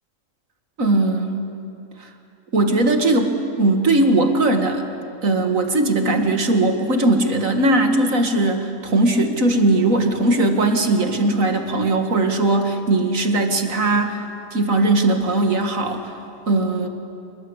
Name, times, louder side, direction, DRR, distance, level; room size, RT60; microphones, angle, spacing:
voice 1, 0.8-1.5 2.0-2.1 2.5-4.8 5.2-14.2 14.5-16.1 16.5-16.9, right 2 dB, 90° right, 5 dB, 2.4 m, -19 dB
28.0 x 22.5 x 8.2 m, 2.6 s
omnidirectional pair, 1.4 m